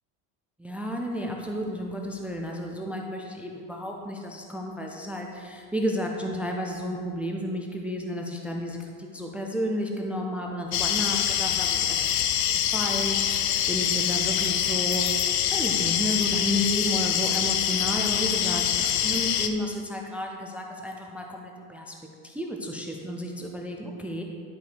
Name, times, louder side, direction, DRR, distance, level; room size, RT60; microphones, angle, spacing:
voice 1, 0.6-12.2 12.5-15.1 15.5-21.9 22.2-24.2, equal, 5° right, 1 dB, 0.3 m, -32 dB
sound 1, 10.7-19.5, left 9 dB, 80° left, 0.7 m, -25 dB
10.5 x 5.0 x 4.6 m, 2.2 s
supercardioid pair, 135°, 40 cm